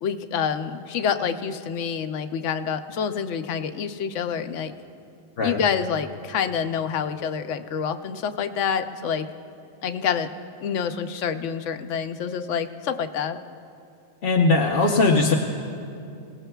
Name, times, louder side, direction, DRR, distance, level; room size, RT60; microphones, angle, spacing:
voice 1, 0.0-4.7 5.4-9.3 9.8-10.3 10.6-13.4, left 7 dB, 85° left, 9 dB, 1.0 m, -27 dB
voice 2, 14.2-15.3, left 3 dB, 55° left, -1 dB, 1.0 m, -19 dB
24.0 x 18.0 x 2.3 m, 2.5 s
omnidirectional pair, 1.2 m